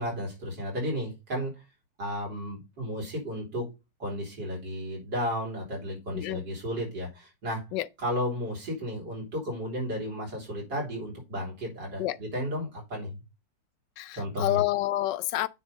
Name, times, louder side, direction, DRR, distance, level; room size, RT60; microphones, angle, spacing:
voice 1, 0.0-1.5 2.0-3.7 4.0-7.7 8.0-13.2 14.1-14.6, equal, 80° right, 4.3 m, -33 dB
voice 2, 14.0-15.5, left 15 dB, 80° left, 1.2 m, -28 dB
9.4 x 3.6 x 5.2 m
omnidirectional pair, 1.9 m